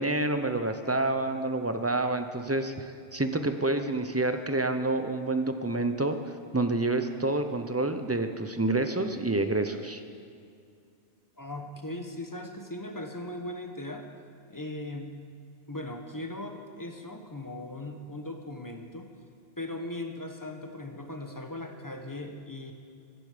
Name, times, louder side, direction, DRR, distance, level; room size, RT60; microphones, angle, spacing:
voice 1, 0.0-6.2 6.5-10.0, right 2 dB, 15° right, 8 dB, 0.5 m, -28 dB
voice 2, 11.4-14.1 14.5-15.2 15.7-19.1 19.6-22.7, left 1 dB, 20° left, 4 dB, 1.1 m, -38 dB
15.5 x 13.5 x 5.1 m, 2.3 s
omnidirectional pair, 1.2 m